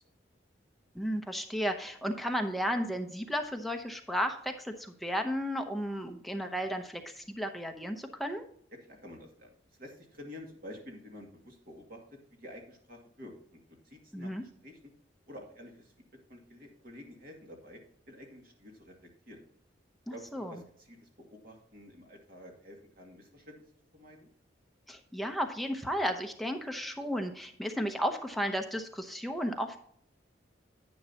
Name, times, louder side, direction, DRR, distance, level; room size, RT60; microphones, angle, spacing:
voice 1, 0.9-8.4 14.1-14.4 20.3-20.5 24.9-29.8, equal, ahead, 4 dB, 0.7 m, -33 dB
voice 2, 8.9-9.5 9.8-13.6 13.8-14.8 15.3-15.9 16.3-17.8 18.1-18.9 19.3-19.4 20.1-24.3, left 1 dB, 50° right, 1 dB, 2.3 m, -49 dB
10.0 x 9.5 x 2.9 m, 0.63 s
head